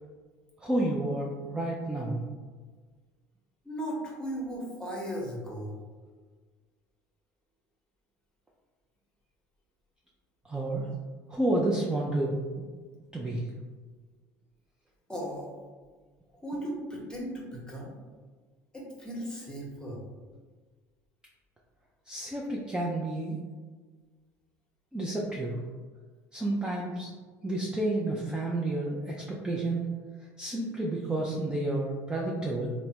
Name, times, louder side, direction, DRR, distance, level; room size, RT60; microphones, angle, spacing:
voice 1, 0.6-2.2 10.4-10.9 11.3-12.4 13.1-13.4 22.1-23.4 24.9-25.6 26.3-27.1 27.4-30.0 30.4-32.7, right 2 dB, 10° right, -3 dB, 0.4 m, -30 dB
voice 2, 3.6-5.8 15.1-15.5 16.4-18.0 18.7-20.0 32.1-32.5, equal, 10° left, -3 dB, 1.0 m, -37 dB
3.2 x 2.0 x 2.8 m, 1.4 s
supercardioid pair, 90°, 8 cm